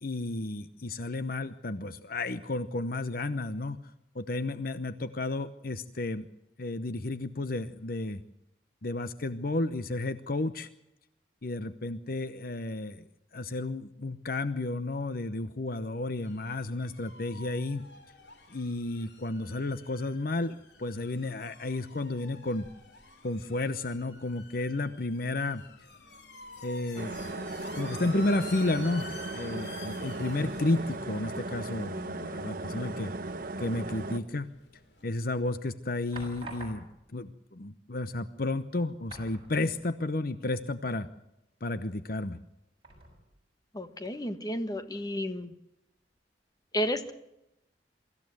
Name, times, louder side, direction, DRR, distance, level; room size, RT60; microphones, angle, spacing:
voice 1, 0.0-3.8 4.1-6.3 6.6-8.2 8.8-10.7 11.4-13.1 13.3-17.9 18.5-22.7 23.2-25.6 26.6-27.2 27.7-33.1 33.6-34.5 35.0-36.8 37.1-41.1 41.6-42.4, left 2 dB, 55° left, 12 dB, 0.9 m, -32 dB
sound 1, 16.2-35.7, left 3 dB, 75° left, 3.2 m, -51 dB
sound 2, 27.0-34.2, right 2 dB, 55° right, 1.2 m, -37 dB
sound 3, 34.9-35.3 36.1-37.2 38.1-38.2 38.5-38.7 39.1-40.0 40.4-40.5 42.8-43.5 44.0-44.1, right 2 dB, 30° right, 6.5 m, -47 dB
voice 2, 43.7-45.5 46.7-47.1, equal, 20° left, 9 dB, 1.5 m, -32 dB
24.0 x 14.5 x 7.9 m, 0.87 s
head